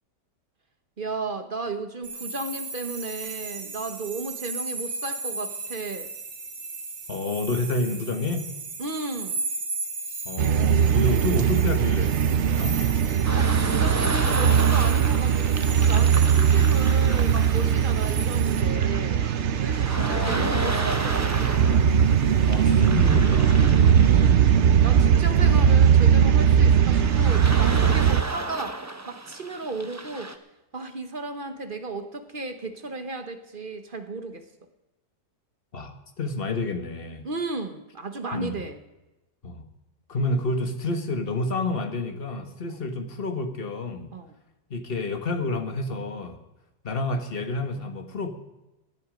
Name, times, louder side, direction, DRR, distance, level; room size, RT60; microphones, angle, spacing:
voice 1, 1.0-6.1 8.8-9.4 13.4-19.3 19.6-21.6 24.0-24.5 24.8-30.3 30.7-34.4 37.2-38.8 42.7-42.8 44.1-44.3, right 3 dB, 40° right, 8 dB, 1.0 m, -34 dB
sound 1, 2.0-18.6, right 3 dB, 80° right, 2.4 m, -36 dB
voice 2, 7.1-8.4 10.2-12.8 20.0-21.0 22.5-24.5 25.4-25.8 27.0-27.1 35.7-37.3 38.3-38.6 39.4-39.6 40.1-44.1 44.7-46.4 46.8-48.3, left 2 dB, 35° left, 7 dB, 1.5 m, -30 dB
sound 2, 10.4-28.2, right 8 dB, 60° right, 0.7 m, -20 dB
sound 3, 13.2-30.4, right 2 dB, 25° right, 0.4 m, -34 dB
17.5 x 11.0 x 5.1 m, 0.99 s
omnidirectional pair, 1.7 m